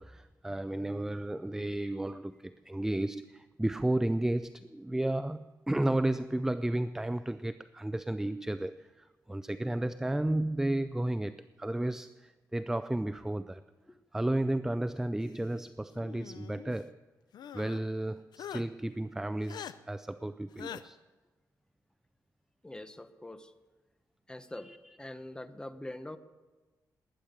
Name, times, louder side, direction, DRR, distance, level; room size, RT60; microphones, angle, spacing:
voice 1, 0.0-13.6 14.1-17.0 17.5-21.0 24.5-24.8, right 1 dB, 5° right, 0.4 m, -33 dB
sound 1, 16.0-16.8 17.3-17.8 18.3-18.6 19.5-19.7 20.6-20.8, left 9 dB, 80° left, 0.6 m, -43 dB
voice 2, 22.6-23.5 24.3-24.7 25.0-26.2, left 1 dB, 10° left, 1.0 m, -44 dB
19.5 x 10.0 x 6.7 m
cardioid pair, 90°, 7 cm